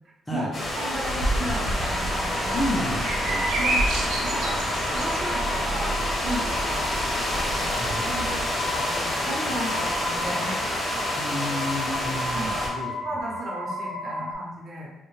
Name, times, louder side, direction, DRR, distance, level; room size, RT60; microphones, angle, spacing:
voice 1, 0.3-2.7 3.6-3.9 4.2-4.6 4.9-6.9 7.4-7.7 8.0-10.6 12.3-12.7 13.0-14.9, right 1 dB, 50° right, -3 dB, 0.7 m, -34 dB
sound 1, 0.5-12.7, left 1 dB, 40° left, 0.8 m, -28 dB
sound 2, 1.2-8.5, right 2 dB, 80° right, 0.4 m, -30 dB
sound 3, 1.9-14.3, left 1 dB, 75° left, 0.5 m, -34 dB
voice 2, 2.5-3.7 7.7-8.1 11.2-12.9, left 1 dB, 15° left, -3 dB, 0.5 m, -31 dB
2.1 x 2.1 x 3.0 m, 0.99 s
cardioid pair, 90°, 0 cm